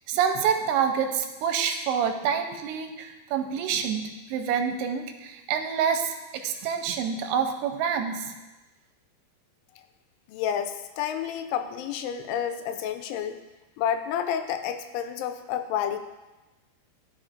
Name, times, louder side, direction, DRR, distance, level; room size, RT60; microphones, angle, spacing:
voice 1, 0.1-8.3, right 7 dB, 90° right, 5 dB, 2.7 m, -27 dB
voice 2, 10.3-13.4 13.8-16.0, left 9 dB, 85° left, 8 dB, 2.6 m, -30 dB
12.5 x 5.0 x 2.5 m, 1.1 s
omnidirectional pair, 4.7 m